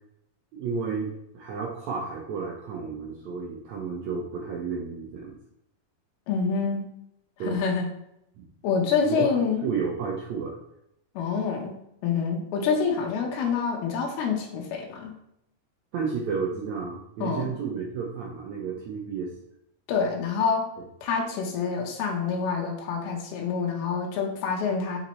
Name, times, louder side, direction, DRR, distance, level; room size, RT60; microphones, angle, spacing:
voice 1, 0.5-5.4 7.4-7.6 8.4-8.5 8.8-9.3 9.6-10.6 15.9-19.4 20.8-20.9, right 5 dB, 85° right, -2 dB, 1.5 m, -32 dB
voice 2, 6.3-6.8 7.4-7.9 8.6-9.7 11.2-11.8 12.0-15.1 17.2-17.5 19.9-20.7 21.0-25.0, left 5 dB, 85° left, 0 dB, 3.0 m, -27 dB
6.6 x 5.7 x 3.1 m, 0.78 s
omnidirectional pair, 4.4 m